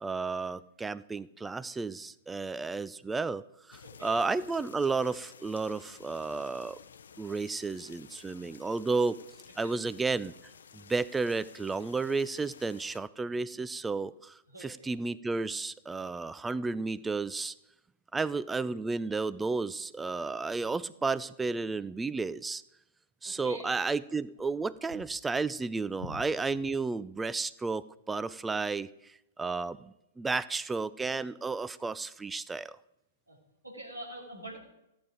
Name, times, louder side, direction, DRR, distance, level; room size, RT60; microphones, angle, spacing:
voice 1, 0.0-3.4 3.7-6.8 7.2-9.2 9.6-10.3 10.7-17.5 18.1-22.6 23.2-32.8, right 4 dB, 10° right, 18 dB, 0.4 m, -32 dB
sound 1, 3.7-13.0, left 7 dB, 65° left, 0.6 m, -53 dB
voice 2, 3.8-4.2 9.6-9.8 14.5-14.9 23.2-23.7 33.3-33.4 33.6-34.6, right 1 dB, 85° right, -4 dB, 2.7 m, -45 dB
14.5 x 9.1 x 5.0 m, 0.88 s
figure-of-eight pair, 105°, 0 cm